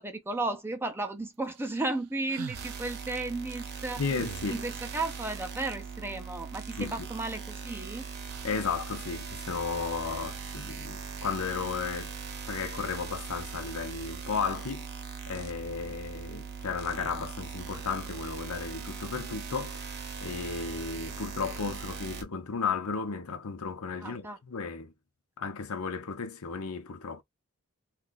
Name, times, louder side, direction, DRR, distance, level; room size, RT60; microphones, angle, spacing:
voice 1, 0.0-4.0 4.5-8.1 24.0-24.4, right 2 dB, 10° right, 0.4 m, -34 dB
sound 1, 1.5-3.1 4.0-4.9 6.4-6.5 6.7-7.7 8.3-8.8, right 8 dB, 90° right, 0.4 m, -46 dB
sound 2, 2.5-22.2, right 6 dB, 45° right, 0.8 m, -40 dB
voice 2, 4.0-4.6 6.8-7.1 8.4-12.1 12.5-14.9 15.3-24.9 25.4-27.2, left 5 dB, 75° left, 0.7 m, -34 dB
2.8 x 2.4 x 3.9 m
head